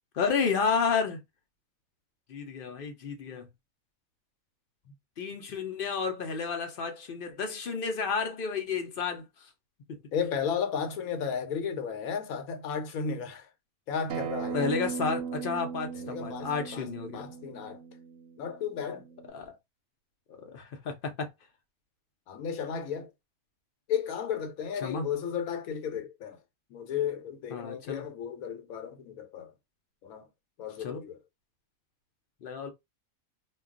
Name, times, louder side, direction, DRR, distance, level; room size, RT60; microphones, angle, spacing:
voice 1, 0.1-1.2 2.3-3.5 5.2-9.5 14.5-17.3 19.3-19.5 20.4-21.3 24.8-25.1 27.5-28.0 30.8-31.0 32.4-32.7, left 5 dB, 60° left, 0.5 m, -31 dB
voice 2, 10.1-13.5 13.9-14.7 16.0-17.8 18.4-19.0 22.3-23.1 23.9-26.4 26.7-29.5 30.0-30.3 30.6-31.2, left 7 dB, 85° left, 1.0 m, -34 dB
Acoustic guitar, 14.1-19.3, right 7 dB, 70° right, 0.9 m, -38 dB
2.3 x 2.2 x 3.6 m
omnidirectional pair, 1.5 m